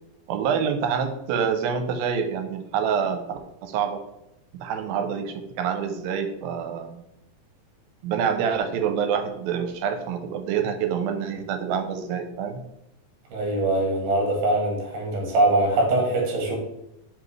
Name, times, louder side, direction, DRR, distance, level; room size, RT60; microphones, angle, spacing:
voice 1, 0.3-4.0 4.6-7.0 8.0-12.6, right 7 dB, 85° right, 6 dB, 2.4 m, -26 dB
voice 2, 13.3-16.6, right 2 dB, 70° right, 0 dB, 2.6 m, -22 dB
6.1 x 5.0 x 3.2 m, 0.85 s
omnidirectional pair, 4.2 m